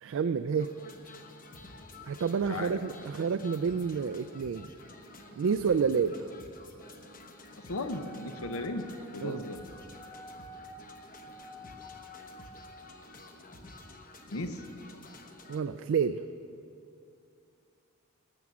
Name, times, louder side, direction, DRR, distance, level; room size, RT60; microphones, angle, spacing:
voice 1, 0.0-0.7 2.0-4.7 5.4-6.3 9.2-9.4 15.5-16.2, right 6 dB, 60° right, 9 dB, 0.3 m, -29 dB
sound 1, 0.6-15.6, left 2 dB, 40° left, 0.9 m, -51 dB
voice 2, 2.5-3.0 7.6-8.9 9.1-9.6 14.3-14.6, left 2 dB, 75° left, 8 dB, 0.9 m, -36 dB
Wind instrument woodwind instrument, 7.9-12.9, equal, 10° left, 0.7 m, -50 dB
19.0 x 7.0 x 6.1 m, 2.6 s
head